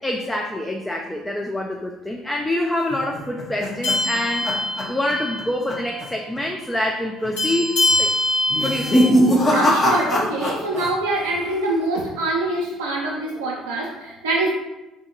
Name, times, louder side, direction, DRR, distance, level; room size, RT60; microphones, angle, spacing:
voice 1, 0.0-4.5 4.9-8.1 8.6-9.1, left 1 dB, 10° left, 1 dB, 0.4 m, -26 dB
sound 1, 2.9-5.4 5.7-6.0 6.4-6.5 7.2-7.6 8.5-10.9 11.2-11.8, equal, 25° left, 0.8 m, -21 dB
sound 2, 3.8-5.5 5.8-6.0 7.4-9.1, left 2 dB, 80° left, 1.5 m, -23 dB
voice 2, 9.4-14.5, right 2 dB, 70° right, -3 dB, 0.4 m, -24 dB
3.4 x 2.6 x 3.8 m, 0.99 s
figure-of-eight pair, 55°, 0 cm